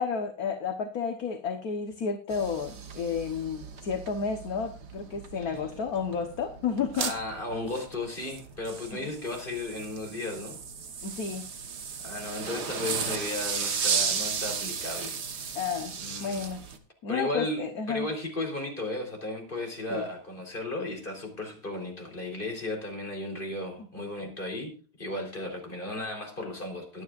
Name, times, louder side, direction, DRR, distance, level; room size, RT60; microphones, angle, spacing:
voice 1, 0.0-7.1 11.0-11.5 15.5-16.6 17.0-18.1 19.9-20.1 23.8-23.9, left 6 dB, 50° left, 6 dB, 1.5 m, -31 dB
sound 1, 2.3-16.8, right 6 dB, 50° right, 1.8 m, -35 dB
voice 2, 6.9-10.6 12.0-15.6 16.0-16.5 17.1-27.0, left 2 dB, 25° left, 2 dB, 4.2 m, -35 dB
23.0 x 9.6 x 2.5 m, 0.35 s
omnidirectional pair, 2.3 m